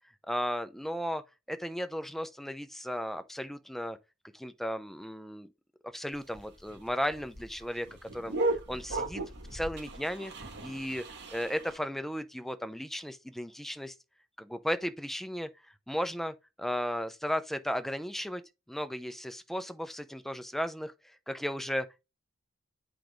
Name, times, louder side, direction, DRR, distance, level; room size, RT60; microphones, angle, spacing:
voice 1, 0.3-1.2 1.5-4.0 4.3-5.5 5.9-9.2 9.5-10.3 10.6-11.0 11.3-14.0 14.4-15.5 15.9-18.4 18.7-20.9 21.3-22.1, equal, ahead, 0.7 m, -35 dB
sound 1, 6.1-11.8, right 2 dB, 60° right, 2.8 m, -36 dB
8.4 x 5.0 x 3.2 m
head